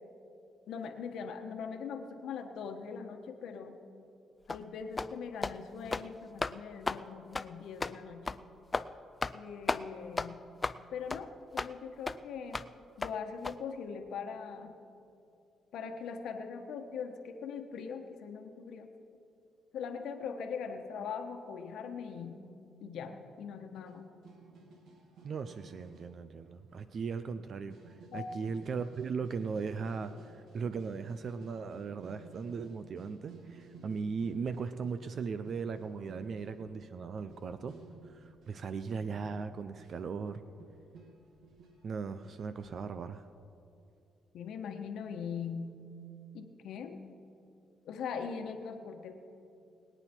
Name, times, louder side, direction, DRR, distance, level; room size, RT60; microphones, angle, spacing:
voice 1, 0.7-3.8 4.5-8.3 9.3-10.4 10.9-12.7 13.0-14.8 15.7-18.9 19.7-22.4 22.8-24.1 28.1-28.3 44.3-45.8 46.3-47.0 47.8-49.1, left 6 dB, 80° left, 6 dB, 1.2 m, -41 dB
sound 1, 4.5-4.6 5.0-5.1 5.4-5.6 5.9-6.1 6.4-6.5 6.9-7.0 7.3-7.5 7.8-7.9 8.3-8.4 8.7-8.9 9.2-9.4 9.7-9.8 10.2-10.3 10.6-10.8 11.1-11.2 11.6-11.7 12.1-12.2 12.5-12.7 13.0-13.1 13.4-13.5, left 3 dB, 25° left, 0.4 m, -34 dB
sound 2, 23.9-24.0 24.2-26.1 26.5-26.6 26.8-26.9 27.1-42.9, right 4 dB, 75° right, 2.0 m, -55 dB
voice 2, 25.2-37.8 38.0-40.4 41.8-43.2, right 5 dB, 55° right, 11 dB, 0.5 m, -38 dB
22.0 x 9.1 x 4.5 m, 2.6 s
cardioid pair, 90°, 0 cm